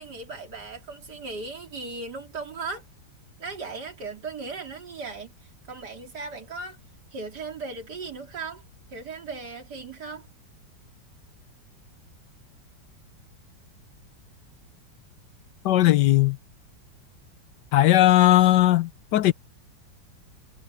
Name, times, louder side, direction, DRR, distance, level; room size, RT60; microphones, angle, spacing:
voice 1, 0.0-2.9 3.4-5.3 5.7-6.8 7.1-8.6 8.9-10.3, right 4 dB, 65° right, 3.4 m, -37 dB
voice 2, 15.6-16.4 17.7-19.3, left 14 dB, 75° left, 1.3 m, -18 dB
omnidirectional pair, 2.0 m